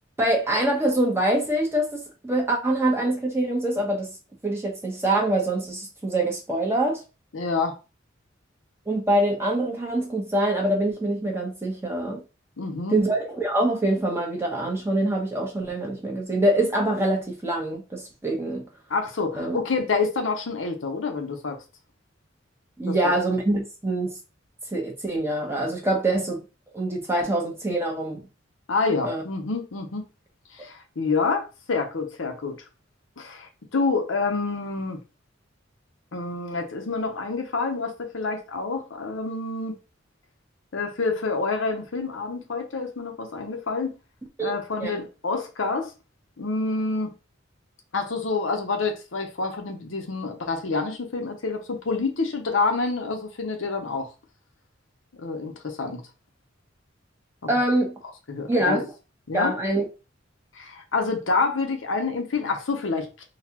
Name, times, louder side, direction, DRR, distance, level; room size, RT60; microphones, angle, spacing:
voice 1, 0.2-4.1 4.4-7.0 8.9-12.2 12.9-18.7 19.4-19.6 22.8-24.1 24.7-26.4 26.7-28.2 29.0-29.2 44.4-44.5 44.8-45.0 57.5-57.9 58.5-58.8 59.3-59.9, right 1 dB, 15° right, 1.0 m, -24 dB
voice 2, 7.3-7.8 12.6-13.0 18.9-21.6 22.9-23.1 28.7-30.1 30.5-32.6 33.2-35.0 36.1-39.8 40.7-43.9 44.4-45.9 46.4-47.1 47.9-54.1 55.2-56.0 57.4-57.5 58.3-58.8 59.3-59.5 60.5-63.2, left 4 dB, 90° left, 0.8 m, -27 dB
3.9 x 2.4 x 2.9 m
head